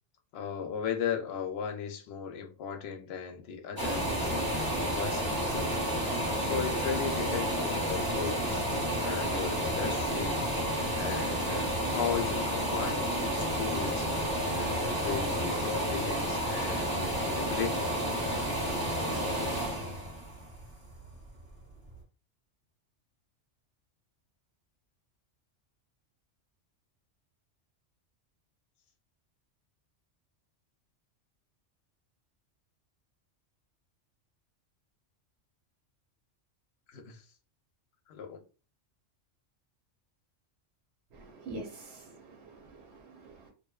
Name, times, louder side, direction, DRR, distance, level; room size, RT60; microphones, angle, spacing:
voice 1, 0.3-6.1 6.4-8.6 9.0-10.4 10.9-14.1 14.5-17.9 36.9-37.2 38.1-38.4, left 7 dB, 65° left, 0.7 m, -37 dB
sound 1, 3.8-21.4 21.9-22.0, equal, 20° right, 0.7 m, -31 dB
voice 2, 41.1-43.5, right 2 dB, 70° right, 0.8 m, -46 dB
2.6 x 2.1 x 2.3 m
omnidirectional pair, 1.2 m